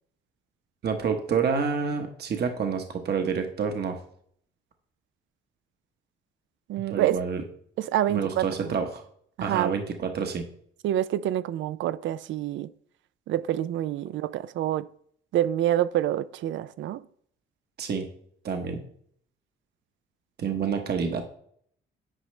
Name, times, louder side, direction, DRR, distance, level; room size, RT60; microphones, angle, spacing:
voice 1, 0.8-4.0 6.9-7.4 8.1-9.0 9.4-10.5 17.8-18.1 18.4-18.8 20.4-21.2, right 6 dB, 55° right, 1.1 m, -28 dB
voice 2, 6.7-7.2 7.8-8.7 9.4-9.8 10.8-12.7 13.3-14.9 15.3-17.0, right 12 dB, 75° right, 0.4 m, -27 dB
9.9 x 5.0 x 3.2 m
cardioid pair, 90°, 20 cm